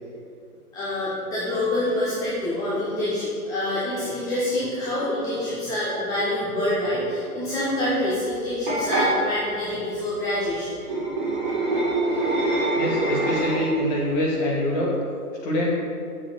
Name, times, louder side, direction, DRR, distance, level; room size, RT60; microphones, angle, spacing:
voice 1, 0.7-10.8, left 1 dB, 10° left, -10 dB, 1.1 m, -26 dB
sound 1, 8.7-9.1 10.8-13.8, right 2 dB, 30° right, 2.5 m, -24 dB
voice 2, 12.8-14.9 15.4-15.7, left 1 dB, 25° left, -3 dB, 1.8 m, -24 dB
7.3 x 6.1 x 6.6 m, 2.4 s
hypercardioid pair, 145°, 46 cm